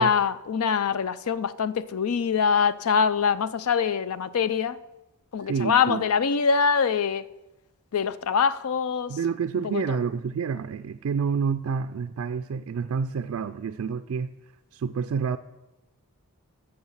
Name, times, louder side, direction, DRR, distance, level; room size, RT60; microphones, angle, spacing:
voice 1, 0.0-4.8 5.3-7.3 7.9-9.2 9.6-10.0, left 6 dB, 75° left, 16 dB, 0.5 m, -24 dB
voice 2, 5.4-6.0 9.1-14.3 14.7-15.4, right 6 dB, 65° right, 10 dB, 0.3 m, -28 dB
9.4 x 6.7 x 7.3 m, 0.99 s
head